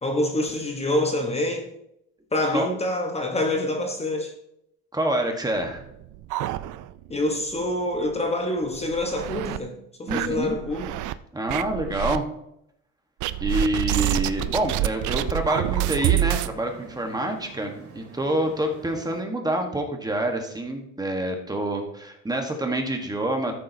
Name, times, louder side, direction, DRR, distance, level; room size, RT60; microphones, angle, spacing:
voice 1, 0.0-1.8 2.3-4.3 7.1-11.0, left 1 dB, 20° left, 1.1 m, -26 dB
voice 2, 4.9-5.8 10.1-10.6 11.3-12.2 13.4-23.5, right 1 dB, 10° right, 1.3 m, -27 dB
Silly Drums, 5.6-7.2 7.5-7.6 8.0-8.1 8.7-9.6 10.1-11.1 11.5-12.2 13.2-16.5, right 14 dB, 70° right, 0.5 m, -27 dB
sound 1, 13.9-19.2, right 4 dB, 50° right, 3.3 m, -46 dB
13.5 x 7.6 x 2.8 m
cardioid pair, 125°, 31 cm